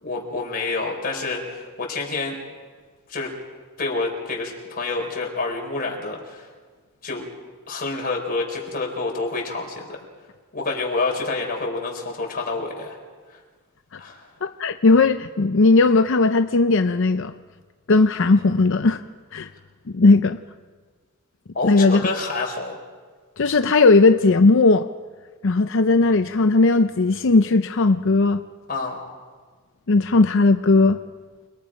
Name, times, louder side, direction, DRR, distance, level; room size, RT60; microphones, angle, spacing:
voice 1, 0.0-2.4 3.1-3.3 3.8-6.4 7.0-7.2 7.7-10.0 10.5-13.0 14.0-14.2 21.5-22.8 28.7-29.0, left 3 dB, 40° left, 0 dB, 4.7 m, -28 dB
voice 2, 14.4-17.3 17.9-19.0 19.3-19.5 19.9-20.4 21.6-22.1 23.4-24.9 25.4-28.4 29.9-31.0, left 3 dB, 60° left, 8 dB, 0.6 m, -17 dB
29.0 x 21.5 x 5.2 m, 1.5 s
head